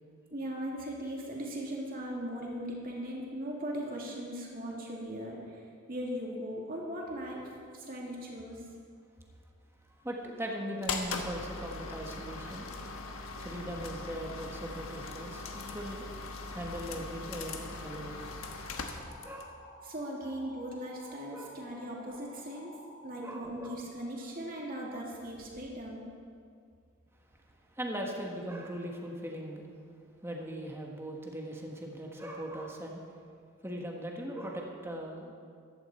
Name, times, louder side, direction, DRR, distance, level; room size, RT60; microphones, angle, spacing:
voice 1, 0.3-5.6 5.9-7.4 7.7-8.6 19.8-22.7 23.0-26.0, equal, 45° right, -2 dB, 2.5 m, -39 dB
voice 2, 9.9-12.7 13.4-16.2 16.5-18.2 19.2-19.5 21.3-21.5 23.2-23.8 27.7-29.6 30.2-33.0 33.6-35.3, right 1 dB, 10° right, 0 dB, 1.5 m, -39 dB
sound 1, 10.8-19.5, left 3 dB, 80° left, 1.2 m, -40 dB
sound 2, 18.3-23.3, equal, 40° left, 4.0 m, -53 dB
14.5 x 12.0 x 4.4 m, 2.2 s
head